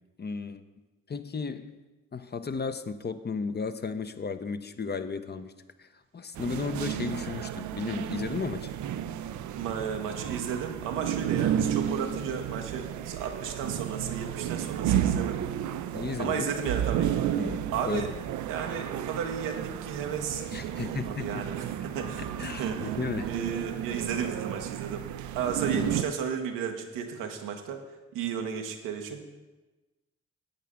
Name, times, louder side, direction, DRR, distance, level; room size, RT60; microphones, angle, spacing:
voice 1, 0.2-0.6 1.1-1.8 2.1-5.5 5.8-8.7 15.9-16.5 17.4-18.0 20.5-21.4 22.4-23.3 25.7-26.0, left 5 dB, 35° left, 10 dB, 0.7 m, -34 dB
Loopable empty classroom wild sound, 6.4-26.0, right 10 dB, 70° right, 0.5 m, -32 dB
voice 2, 9.6-15.4 16.2-17.3 17.7-18.1 18.5-22.8 23.2-25.0 25.3-27.8 28.1-29.2, right 7 dB, 85° right, 4 dB, 1.0 m, -33 dB
11.5 x 8.3 x 3.6 m, 1.1 s
hypercardioid pair, 40°, 31 cm